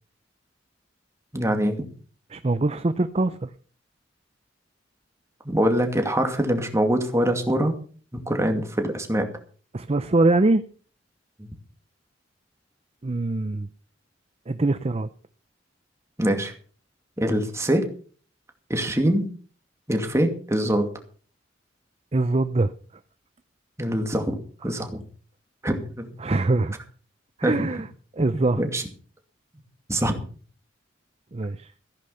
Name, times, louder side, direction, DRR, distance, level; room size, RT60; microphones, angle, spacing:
voice 1, 1.3-1.8 5.4-7.8 8.1-9.3 11.4-11.5 16.2-16.5 17.2-17.9 18.7-19.3 19.9-20.9 23.8-24.4 24.6-25.0 25.6-26.1 27.4-27.7 28.2-28.3 28.6-28.8 29.9-30.2, right 1 dB, 15° right, 5 dB, 2.4 m, -24 dB
voice 2, 2.3-3.5 9.7-10.6 13.0-13.7 14.5-15.1 22.1-22.7 26.2-26.7 27.4-27.9 28.1-28.6 31.3-31.7, right 2 dB, 35° right, 12 dB, 0.6 m, -23 dB
15.0 x 10.5 x 5.7 m, 0.43 s
head